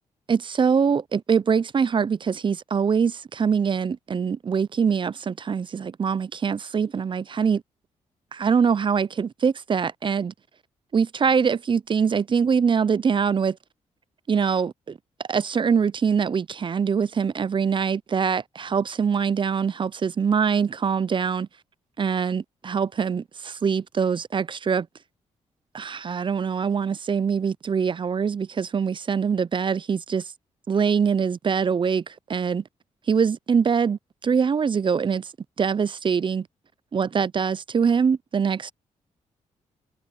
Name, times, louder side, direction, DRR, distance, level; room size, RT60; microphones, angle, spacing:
voice 1, 0.3-7.6 8.3-10.3 10.9-13.6 14.3-15.0 15.3-21.5 22.0-24.9 25.7-30.3 30.7-32.6 33.1-35.3 35.6-36.5 36.9-38.7, right 6 dB, 40° right, 0.5 m, -23 dB
cardioid pair, 65°, 13 cm